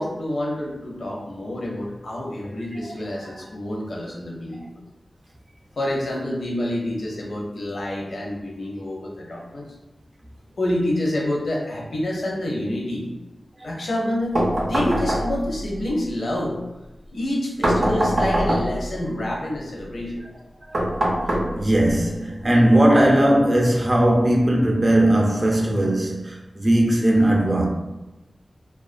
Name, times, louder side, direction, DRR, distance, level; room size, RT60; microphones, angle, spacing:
voice 1, 0.0-4.7 5.8-9.7 10.6-13.1 13.6-14.4 14.6-16.6 17.1-20.2, left 1 dB, 80° left, 0.6 m, -27 dB
sound 1, 14.3-15.6 17.6-18.9 20.7-21.9, right 1 dB, 80° right, 0.5 m, -22 dB
voice 2, 21.5-27.7, right 1 dB, 35° right, 0.5 m, -18 dB
2.3 x 2.2 x 2.4 m
wide cardioid pair, 80°, 0 cm